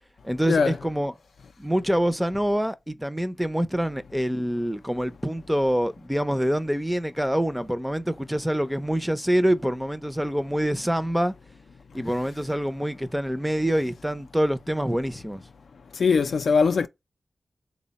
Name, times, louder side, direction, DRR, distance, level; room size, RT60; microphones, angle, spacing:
voice 1, 0.2-1.1 1.6-11.3 11.9-15.4, equal, 5° right, 0.4 m, -25 dB
voice 2, 16.0-16.9, left 5 dB, 75° left, 0.3 m, -20 dB
3.4 x 2.1 x 3.9 m
cardioid pair, 40°, 0 cm